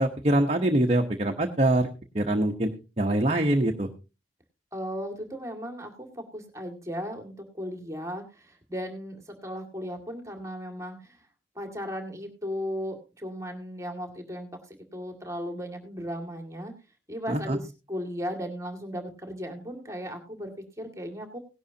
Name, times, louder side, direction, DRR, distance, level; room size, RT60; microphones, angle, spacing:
voice 1, 0.0-1.9 2.1-2.7 3.0-3.9 17.3-17.6, right 1 dB, 35° right, 3 dB, 1.0 m, -24 dB
voice 2, 4.7-11.2 11.6-16.7 17.1-21.4, equal, 15° right, 4 dB, 2.1 m, -36 dB
17.5 x 11.0 x 2.8 m, 0.31 s
head